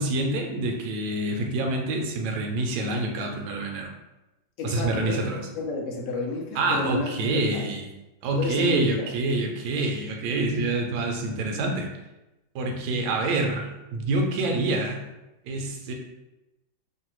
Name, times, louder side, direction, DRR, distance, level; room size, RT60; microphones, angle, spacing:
voice 1, 0.0-3.9 4.6-5.4 6.6-7.9 8.2-11.9 12.5-15.0 15.4-15.9, right 2 dB, 75° right, 2 dB, 1.1 m, -26 dB
voice 2, 4.6-5.2 5.6-7.7 8.4-9.1, left 3 dB, 65° left, 0 dB, 0.8 m, -31 dB
3.1 x 2.1 x 2.9 m, 0.98 s
omnidirectional pair, 1.9 m